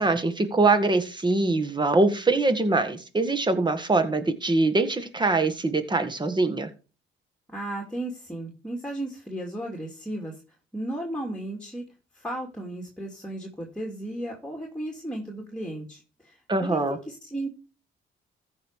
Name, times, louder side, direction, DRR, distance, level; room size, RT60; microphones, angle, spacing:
voice 1, 0.0-6.7 16.5-17.0, right 3 dB, 20° right, 8 dB, 1.8 m, -23 dB
voice 2, 7.5-10.3 10.7-11.8 12.1-16.8 17.1-17.5, right 1 dB, 5° left, 0 dB, 2.6 m, -34 dB
14.5 x 5.5 x 4.8 m, 0.34 s
cardioid pair, 90°, 20 cm